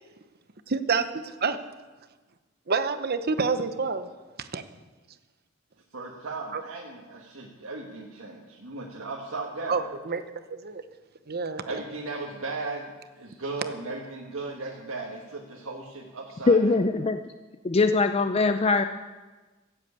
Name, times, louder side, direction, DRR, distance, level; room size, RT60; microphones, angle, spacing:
voice 1, 0.7-1.6 2.7-4.1 4.4-4.6 6.5-6.6 9.7-10.2 10.5-10.8 11.3-11.6, right 4 dB, 50° right, 11 dB, 0.9 m, -28 dB
voice 2, 5.9-9.8 11.6-17.1, right 3 dB, 85° right, -2 dB, 1.6 m, -37 dB
voice 3, 16.5-17.2 17.6-18.8, left 3 dB, 30° left, 9 dB, 0.4 m, -21 dB
14.5 x 8.2 x 8.3 m, 1.3 s
head